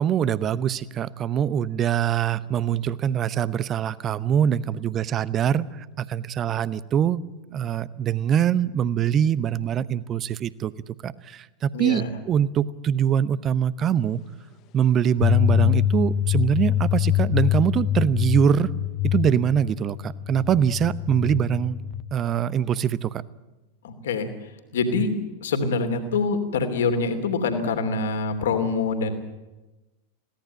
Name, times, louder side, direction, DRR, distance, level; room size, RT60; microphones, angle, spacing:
voice 1, 0.0-7.2 7.5-14.2 14.7-18.7 19.0-21.8 22.1-23.2, right 9 dB, 30° right, 18 dB, 0.8 m, -23 dB
voice 2, 11.7-12.1 23.8-25.1 25.4-29.1, left 4 dB, 60° left, 7 dB, 2.9 m, -25 dB
sound 1, 15.2-22.0, left 11 dB, 40° left, 1.0 m, -24 dB
22.0 x 17.5 x 9.2 m, 1.1 s
figure-of-eight pair, 90°, 0 cm